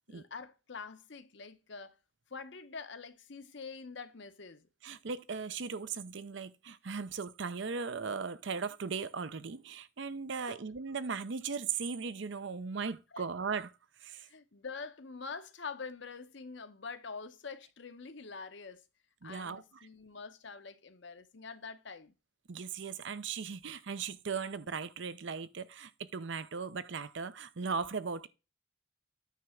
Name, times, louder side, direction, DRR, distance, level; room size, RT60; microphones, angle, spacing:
voice 1, 0.1-2.0 2.3-5.0 10.5-10.6 13.1-13.3 14.2-18.8 19.2-22.1, left 4 dB, 60° left, 0.8 m, -45 dB
voice 2, 4.8-13.7 14.0-14.3 19.2-19.6 22.5-28.3, right 5 dB, 60° right, 0.6 m, -38 dB
9.1 x 3.4 x 6.3 m
head